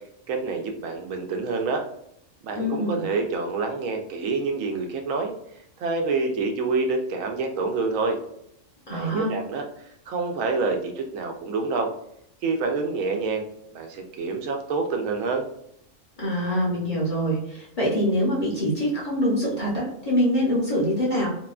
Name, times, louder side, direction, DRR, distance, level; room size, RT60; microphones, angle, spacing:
voice 1, 0.3-1.8 2.4-5.3 5.8-8.2 8.9-9.6 10.1-11.9 12.4-13.4 13.7-15.4, right 4 dB, 85° right, 4 dB, 1.0 m, -27 dB
voice 2, 2.5-3.0 8.9-9.3 16.2-21.3, equal, 40° left, -5 dB, 0.6 m, -24 dB
2.7 x 2.1 x 2.3 m, 0.74 s
omnidirectional pair, 1.3 m